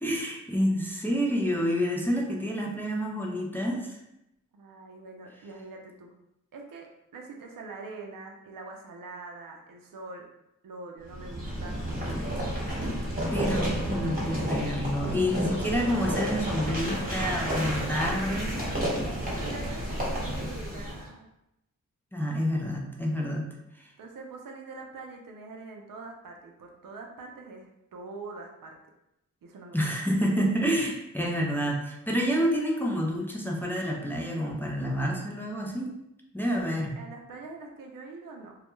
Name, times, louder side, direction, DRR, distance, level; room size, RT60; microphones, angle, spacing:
voice 1, 0.0-4.0 13.3-18.6 22.1-23.4 23.8-23.9 29.7-35.9 36.3-37.0, equal, 5° left, -1 dB, 0.4 m, -28 dB
voice 2, 4.5-6.1 6.5-10.3 10.6-12.3 19.3-21.3 24.0-28.8 29.4-29.9 37.0-38.6, right 3 dB, 80° right, 2 dB, 0.5 m, -44 dB
sound 1, 11.1-21.0, equal, 25° right, 1.0 m, -31 dB
2.3 x 2.2 x 3.0 m, 0.85 s
wide cardioid pair, 80°, 33 cm